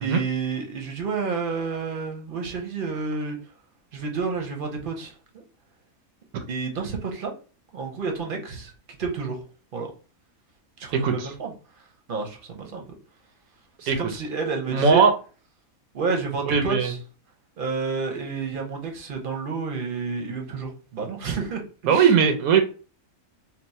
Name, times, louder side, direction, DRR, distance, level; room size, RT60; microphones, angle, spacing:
voice 1, 0.0-3.4 3.9-5.4 6.5-7.3 7.7-8.7 9.0-9.4 9.7-9.9 10.8-11.5 12.1-12.9 13.8-15.0 15.9-17.0 17.6-22.4, right 4 dB, 50° right, 2 dB, 0.7 m, -30 dB
voice 2, 10.9-11.3 13.9-14.0 14.7-15.1 16.5-16.9 21.9-22.6, right 6 dB, 75° right, 7 dB, 1.0 m, -19 dB
2.9 x 2.0 x 4.0 m, 0.36 s
omnidirectional pair, 1.5 m